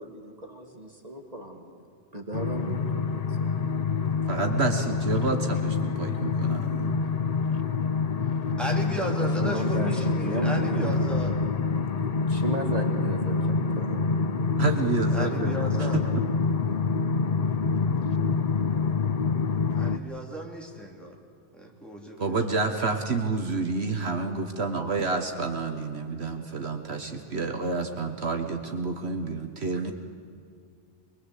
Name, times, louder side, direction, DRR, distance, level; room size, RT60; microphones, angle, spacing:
voice 1, 0.0-1.9 2.1-3.5 9.1-10.9 12.3-14.0, right 1 dB, 35° right, 2 dB, 2.3 m, -35 dB
sound 1, 2.3-20.0, left 4 dB, 40° left, 0.7 m, -26 dB
voice 2, 4.3-6.9 10.8-10.9 14.6-16.1 22.2-29.9, right 4 dB, 65° right, 4 dB, 1.6 m, -29 dB
voice 3, 8.6-11.4 15.1-16.0 19.7-21.2 21.5-22.4, right 1 dB, ahead, -1 dB, 3.4 m, -35 dB
26.0 x 22.0 x 8.3 m, 2.3 s
omnidirectional pair, 1.2 m